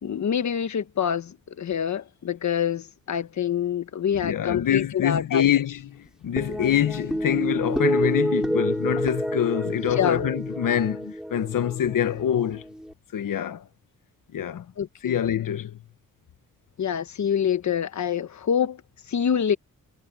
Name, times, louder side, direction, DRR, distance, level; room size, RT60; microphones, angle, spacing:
voice 1, 0.0-5.5 10.0-10.2 14.8-15.2 16.8-18.8 19.1-19.5, left 8 dB, 60° left, 1.3 m, -26 dB
voice 2, 4.2-12.6 13.1-13.6 14.3-14.7 15.0-15.8, left 10 dB, 80° left, 1.2 m, -25 dB
sound 1, 6.4-12.9, equal, ahead, 4.8 m, -28 dB
wide cardioid pair, 170°, 32 cm